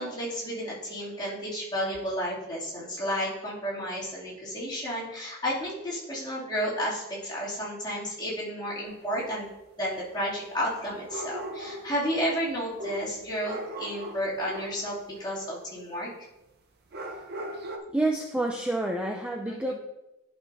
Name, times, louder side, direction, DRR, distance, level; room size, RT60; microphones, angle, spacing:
voice 1, 0.0-9.5 9.8-16.1 19.5-19.7, equal, 20° left, -8 dB, 2.5 m, -32 dB
sound 1, 8.8-8.9 11.0-12.0 12.8-14.9 16.9-17.8, right 1 dB, 45° right, 0.7 m, -38 dB
voice 2, 17.9-19.7, right 2 dB, 5° right, 1 dB, 0.4 m, -28 dB
11.0 x 5.7 x 2.6 m, 0.95 s
head